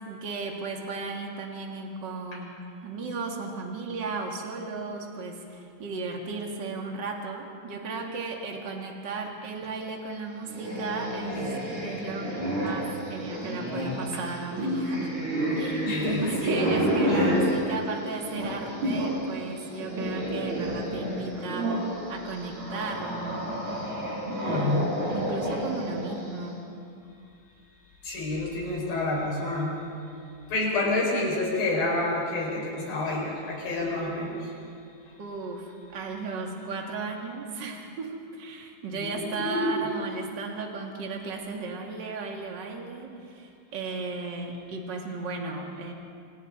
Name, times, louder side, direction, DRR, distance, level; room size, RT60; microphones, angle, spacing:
voice 1, 0.1-2.5 2.8-15.1 15.5-15.9 16.2-21.8 22.1-24.0 24.5-26.6 35.2-45.9, right 3 dB, 35° right, 1 dB, 2.4 m, -35 dB
sound 1, 10.5-19.2 19.5-26.3, equal, 60° right, 7.6 m, -30 dB
voice 2, 15.8-17.4 24.4-24.8 28.0-29.8 30.5-34.5 39.0-39.8, left 2 dB, 80° left, -3 dB, 7.1 m, -28 dB
27.5 x 27.5 x 4.0 m, 2.5 s
omnidirectional pair, 4.1 m